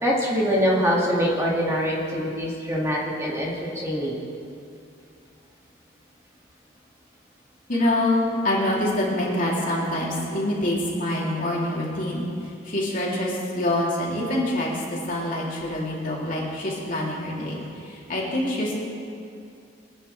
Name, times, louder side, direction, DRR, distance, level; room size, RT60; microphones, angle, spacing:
voice 1, 0.0-4.2, equal, 15° right, -5 dB, 2.1 m, -24 dB
voice 2, 7.7-12.3 12.6-14.8 15.1-18.7, left 1 dB, 45° left, -5 dB, 3.0 m, -25 dB
24.0 x 10.0 x 3.3 m, 2.6 s
head